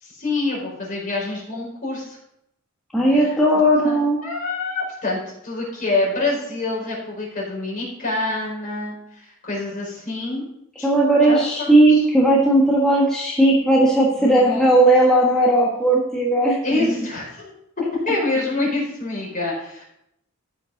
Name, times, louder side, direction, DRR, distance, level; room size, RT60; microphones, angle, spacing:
voice 1, 0.0-2.2 3.1-3.3 3.8-4.0 4.2-10.4 10.8-10.9 11.2-11.7 14.2-14.8 16.6-17.5 18.0-19.8, left 2 dB, 40° left, -4 dB, 4.5 m, -26 dB
voice 2, 2.9-4.2 10.8-16.9, right 1 dB, 5° left, -5 dB, 1.5 m, -17 dB
14.5 x 5.7 x 3.9 m, 0.79 s
head